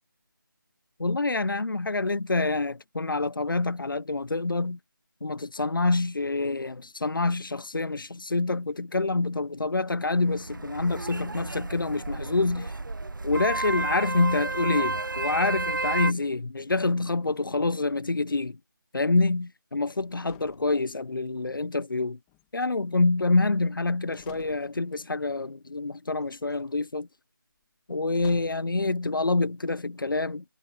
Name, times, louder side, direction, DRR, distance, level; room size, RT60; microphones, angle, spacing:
voice 1, 1.0-4.8 5.2-12.7 13.2-18.6 18.9-22.2 22.5-27.1 27.9-30.4, left 3 dB, 70° left, 0.9 m, -27 dB
sound 1, 10.1-16.1, right 2 dB, 65° right, 1.1 m, -32 dB
sound 2, 17.3-18.2 19.9-21.2 22.3-23.0 23.7-23.8 24.1-25.0 26.2-26.7 28.1-28.8, left 21 dB, 5° left, 2.3 m, -55 dB
figure-of-eight pair, 175°, 11 cm